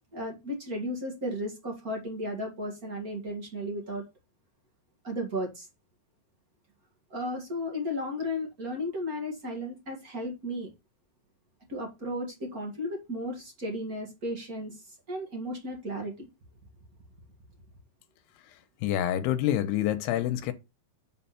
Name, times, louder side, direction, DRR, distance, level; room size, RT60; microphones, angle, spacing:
voice 1, 0.1-4.0 5.0-5.7 7.1-10.7 11.7-16.3, left 1 dB, 40° right, 1.3 m, -34 dB
voice 2, 18.8-20.5, left 12 dB, 80° left, 2.8 m, -27 dB
7.5 x 4.3 x 5.8 m
omnidirectional pair, 4.8 m